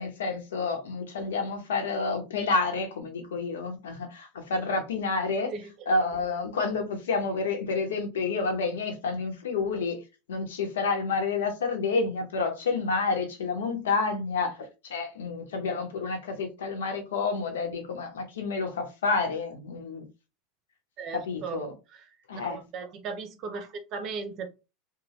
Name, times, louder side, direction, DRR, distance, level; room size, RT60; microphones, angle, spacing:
voice 1, 0.0-5.5 5.9-10.0 10.3-20.0 21.1-21.7 22.3-22.6, left 4 dB, 80° left, 0.9 m, -29 dB
voice 2, 21.0-21.6 21.9-22.0 22.4-24.5, right 5 dB, 50° right, 0.7 m, -37 dB
2.9 x 2.1 x 3.0 m
hypercardioid pair, 85°, 0 cm